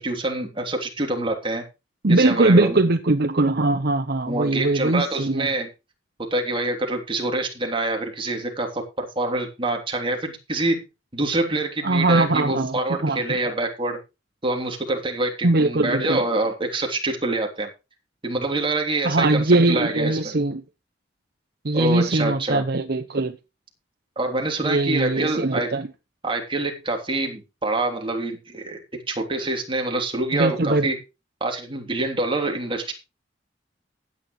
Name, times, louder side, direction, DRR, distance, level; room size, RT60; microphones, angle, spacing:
voice 1, 0.0-1.6 2.1-2.8 4.3-5.7 6.3-10.8 11.1-14.0 14.4-17.7 18.2-20.3 21.7-22.6 24.2-25.7 26.2-31.0 31.4-32.9, right 2 dB, 30° right, 3.2 m, -26 dB
voice 2, 2.0-5.5 11.8-13.4 15.4-16.2 19.0-20.6 21.6-23.4 24.6-25.9 30.3-30.9, right 2 dB, 55° right, 0.9 m, -21 dB
15.5 x 9.5 x 3.1 m
head